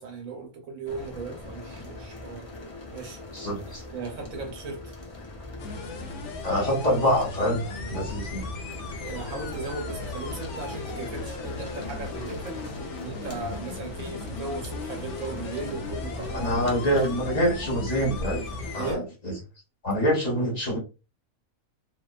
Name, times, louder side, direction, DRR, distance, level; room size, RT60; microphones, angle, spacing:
voice 1, 0.0-2.5 2.9-3.2 3.7-4.9 9.0-12.6 13.0-16.6 18.7-19.1, right 4 dB, 75° right, 1.1 m, -37 dB
sound 1, 0.8-18.9, left 1 dB, 50° left, 0.4 m, -39 dB
voice 2, 3.3-3.8 6.4-7.6 7.9-8.4 16.3-18.4 18.7-19.3 19.8-20.8, equal, 35° left, 0.9 m, -25 dB
sound 2, 5.6-19.0, left 4 dB, 65° left, 0.8 m, -39 dB
2.7 x 2.2 x 2.3 m
omnidirectional pair, 1.5 m